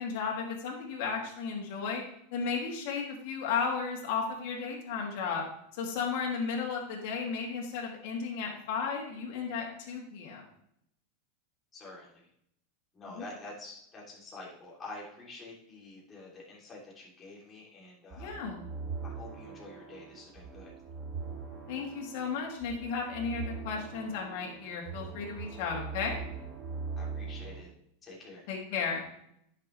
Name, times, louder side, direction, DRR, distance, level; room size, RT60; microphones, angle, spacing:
voice 1, 0.0-2.0 2.3-5.4 5.7-10.4 13.1-13.2 18.2-18.6 21.7-26.2 28.5-29.0, left 5 dB, 60° left, -1 dB, 2.7 m, -34 dB
voice 2, 11.7-12.2 12.9-18.4 19.0-20.7 27.0-27.7 28.0-28.5, left 2 dB, 20° left, -4 dB, 3.2 m, -47 dB
sound 1, 18.1-27.6, right 5 dB, 35° right, 2.1 m, -41 dB
10.0 x 6.8 x 3.3 m, 0.73 s
supercardioid pair, 135°, 0 cm